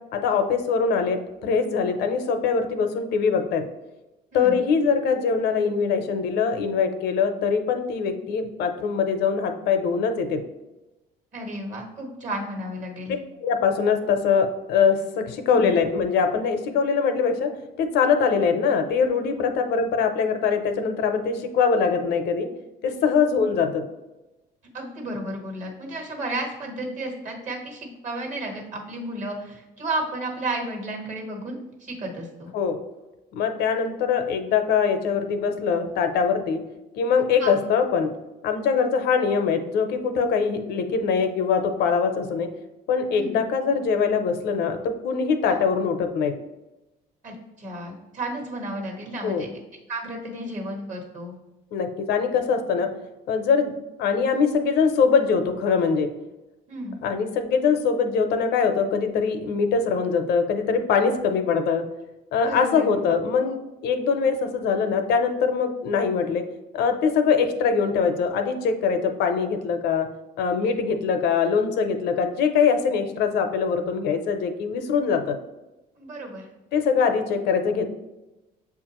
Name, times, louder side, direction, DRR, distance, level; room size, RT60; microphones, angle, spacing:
voice 1, 0.1-3.7 4.3-10.4 13.4-17.5 17.8-22.5 22.8-23.9 32.5-32.8 33.3-36.6 36.9-38.1 38.4-42.5 42.9-46.3 49.2-49.4 51.7-52.9 53.3-53.7 54.0-56.1 57.0-61.8 62.3-66.4 66.7-70.1 70.4-75.4 76.7-77.9, left 5 dB, 75° left, 7 dB, 0.6 m, -23 dB
voice 2, 4.3-4.6 11.3-13.2 15.5-15.7 24.7-32.5 37.4-37.5 43.1-43.4 45.5-45.6 47.2-49.5 49.9-51.4 56.7-57.0 62.4-62.9 76.0-76.5, right 1 dB, 50° right, 1 dB, 1.4 m, -32 dB
6.9 x 2.5 x 2.9 m, 1.0 s
cardioid pair, 110°, 17 cm